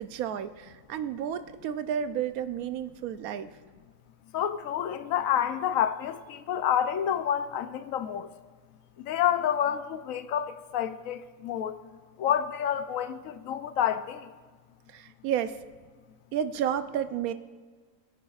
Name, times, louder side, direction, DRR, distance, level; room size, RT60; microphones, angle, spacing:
voice 1, 0.0-3.5 14.9-15.6 16.3-17.3, right 9 dB, 85° right, 1.1 m, -31 dB
voice 2, 4.3-8.3 9.0-11.8 12.2-14.3, left 9 dB, 75° left, 1.0 m, -29 dB
22.0 x 9.5 x 2.4 m
omnidirectional pair, 1.5 m